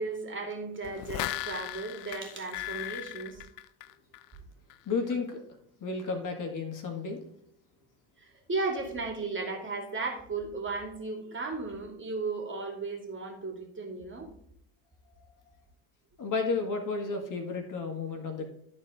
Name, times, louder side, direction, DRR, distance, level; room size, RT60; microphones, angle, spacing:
voice 1, 0.0-3.4 8.2-14.3, right 3 dB, 25° right, 1 dB, 2.6 m, -35 dB
sound 1, 0.8-4.4 4.7-4.8, left 15 dB, 65° left, 0.6 m, -37 dB
voice 2, 4.9-5.4 5.8-7.2 16.2-18.5, left 4 dB, 45° left, 4 dB, 2.0 m, -32 dB
12.5 x 4.4 x 3.6 m, 0.73 s
hypercardioid pair, 70°, 44 cm